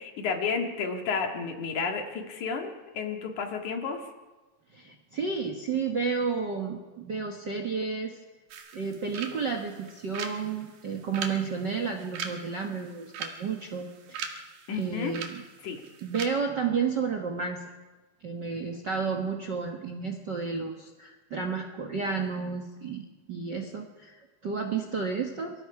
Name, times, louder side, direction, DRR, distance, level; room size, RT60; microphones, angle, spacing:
voice 1, 0.0-4.1 14.7-15.1 15.6-15.8, left 5 dB, 60° left, 3 dB, 3.3 m, -31 dB
voice 2, 4.7-8.2 8.7-14.4 14.8-15.4 16.0-17.6 18.2-25.5, right 5 dB, 45° right, 4 dB, 1.4 m, -32 dB
sound 1, 8.5-16.3, right 6 dB, 75° right, 3.6 m, -41 dB
28.0 x 23.5 x 4.9 m, 1.2 s
omnidirectional pair, 4.0 m